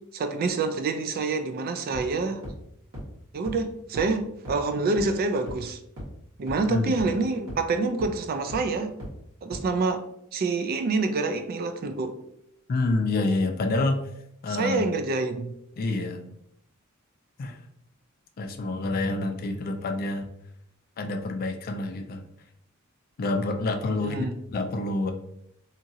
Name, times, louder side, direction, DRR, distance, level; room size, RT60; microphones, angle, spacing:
voice 1, 0.1-2.4 3.3-5.8 6.4-9.0 9.4-10.0 10.3-12.2 14.5-15.5 24.0-24.3, right 3 dB, 45° right, 7 dB, 0.3 m, -27 dB
sound 1, 1.9-2.0 2.4-2.5 2.9-3.0 3.4-3.5 3.9-4.0 4.4-4.5 5.0-5.1 5.5-5.6 6.0-6.1 6.5-6.6 7.0-7.1 7.5-7.6 8.0-8.1 8.5-8.6 9.0-9.1 9.5-9.6, equal, 85° right, 1.4 m, -36 dB
voice 2, 12.7-14.0 14.4-14.8 15.8-16.3 17.4-17.6 18.4-20.3 21.0-22.2 23.2-24.2 24.5-25.1, left 2 dB, 45° left, 5 dB, 0.4 m, -27 dB
2.8 x 2.5 x 2.7 m, 0.76 s
head